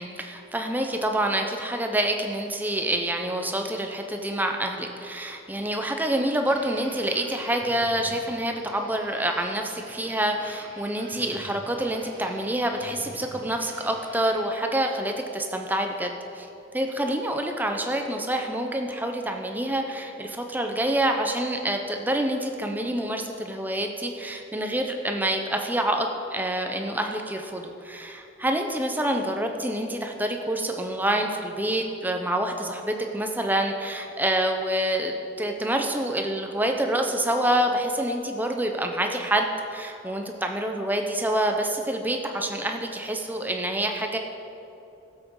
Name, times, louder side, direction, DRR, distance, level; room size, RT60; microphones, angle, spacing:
voice 1, 0.0-16.5 16.7-44.2, right 1 dB, 10° right, 3 dB, 0.7 m, -27 dB
sound 1, 6.5-14.5, right 2 dB, 90° right, 2.7 m, -46 dB
16.5 x 7.6 x 4.8 m, 2.9 s
head